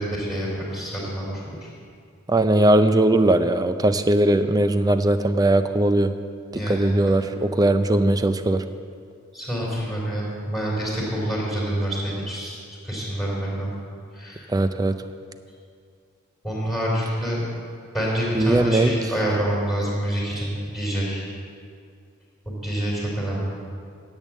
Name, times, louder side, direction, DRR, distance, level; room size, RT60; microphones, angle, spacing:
voice 1, 0.0-1.7 6.5-7.2 9.3-12.6 12.8-13.7 14.1-14.5 16.4-17.4 17.9-21.3 22.5-23.5, right 1 dB, ahead, -4 dB, 3.5 m, -27 dB
voice 2, 2.3-6.1 6.7-8.6 14.5-14.9 18.3-18.9, right 1 dB, 20° right, 10 dB, 0.5 m, -19 dB
10.5 x 8.2 x 7.4 m, 2.2 s
head